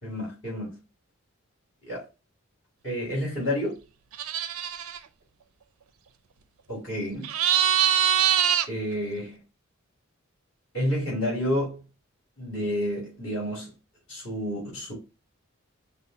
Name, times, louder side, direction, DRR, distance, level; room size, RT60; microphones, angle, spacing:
voice 1, 0.0-0.7 1.8-2.0 2.8-3.8 6.7-7.3 8.7-9.4 10.7-11.8 12.4-13.7 14.1-14.9, equal, 55° left, 2.5 m, -30 dB
sound 1, 4.1-5.0 7.2-8.7, right 10 dB, 80° right, 0.4 m, -23 dB
5.3 x 2.2 x 4.5 m
head